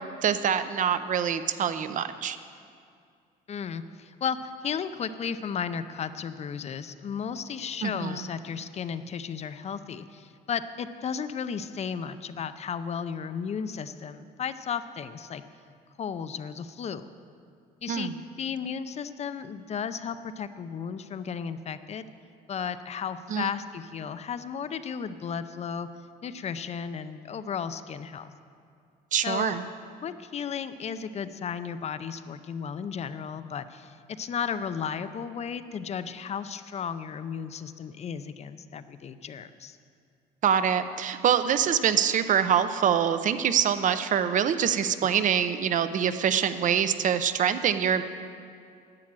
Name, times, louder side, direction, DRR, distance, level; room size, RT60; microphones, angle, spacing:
voice 1, 0.2-2.4 7.8-8.2 17.9-18.2 23.3-23.5 29.1-29.6 40.4-48.0, right 8 dB, 50° right, 11 dB, 0.7 m, -25 dB
voice 2, 3.5-15.4 16.0-17.1 17.8-18.1 18.4-22.1 22.5-25.9 26.2-28.3 29.2-29.6 30.0-39.8, left 7 dB, 40° left, 12 dB, 0.6 m, -34 dB
11.5 x 8.5 x 7.6 m, 2.3 s
cardioid pair, 110°, 17 cm